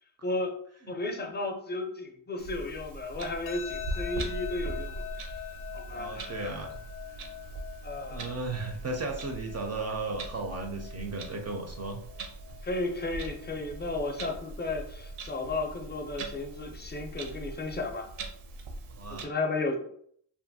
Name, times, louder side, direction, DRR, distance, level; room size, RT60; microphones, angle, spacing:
voice 1, 0.2-0.5 0.9-6.6 7.8-8.3 12.6-18.1 19.1-19.8, left 2 dB, 20° left, 4 dB, 0.5 m, -34 dB
Clock, 2.4-19.2, right 2 dB, 90° right, 0.6 m, -41 dB
sound 1, 3.5-16.4, left 11 dB, 80° left, 0.5 m, -45 dB
voice 2, 5.9-6.8 8.1-12.0 18.9-19.3, right 3 dB, 35° right, 3 dB, 0.4 m, -35 dB
2.6 x 2.5 x 2.6 m, 0.64 s
cardioid pair, 90°, 49 cm